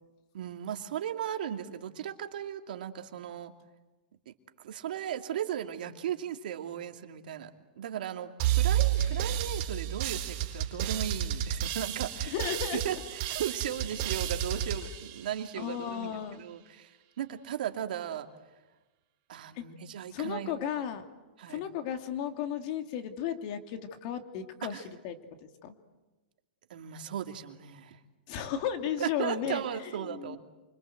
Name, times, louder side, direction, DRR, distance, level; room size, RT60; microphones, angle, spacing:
voice 1, 0.3-3.5 4.3-4.4 4.6-7.5 7.8-12.3 12.7-16.1 16.4-18.3 19.3-20.6 21.4-21.6 24.7-24.8 26.7-28.0 29.0-30.4, right 10 dB, 70° right, 5 dB, 2.6 m, -36 dB
sound 1, 8.4-15.9, right 11 dB, 40° right, 4.1 m, -31 dB
voice 2, 12.3-12.8 15.6-16.4 19.5-19.6 20.1-21.0 21.5-25.1 25.4-25.7 28.3-30.4, left 9 dB, 45° left, 6 dB, 2.7 m, -35 dB
28.5 x 25.5 x 7.9 m, 1.2 s
hypercardioid pair, 140°, 5 cm